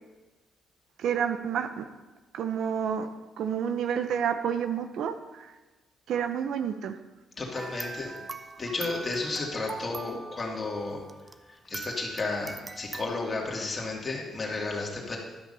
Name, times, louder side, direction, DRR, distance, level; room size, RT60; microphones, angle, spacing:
voice 1, 1.0-1.9 2.3-3.1 3.4-5.5 6.1-7.0, right 8 dB, 75° right, 9 dB, 0.7 m, -29 dB
voice 2, 7.4-8.1 8.6-11.0 11.7-15.2, left 3 dB, 35° left, -1 dB, 2.5 m, -32 dB
sound 1, 7.6-11.4 11.7-13.0, right 3 dB, 25° right, 0.6 m, -41 dB
12.0 x 5.9 x 5.6 m, 1.2 s
cardioid pair, 90°, 0 cm